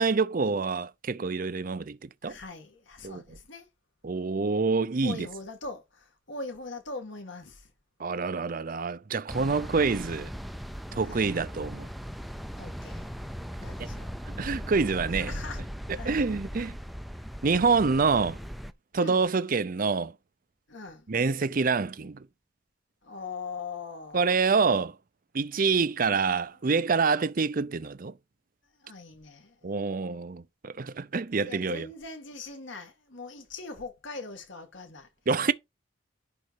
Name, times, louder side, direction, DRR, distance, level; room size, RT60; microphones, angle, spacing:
voice 1, 0.0-2.4 3.0-3.2 4.0-5.3 8.0-10.3 10.9-11.9 13.8-13.9 14.3-15.3 16.0-16.8 17.4-18.4 18.9-20.1 21.1-22.2 24.1-25.0 25.3-28.1 29.6-31.9 35.3-35.5, right 4 dB, 45° right, 0.5 m, -26 dB
voice 2, 2.2-3.7 5.0-7.7 11.0-11.3 12.5-13.1 13.6-14.2 15.0-15.6 15.9-16.3 18.9-19.2 20.7-21.1 23.0-24.4 28.8-29.6 31.5-35.1, left 3 dB, 70° left, 2.2 m, -41 dB
sound 1, 9.3-18.7, equal, ahead, 0.5 m, -39 dB
11.0 x 4.0 x 4.7 m
head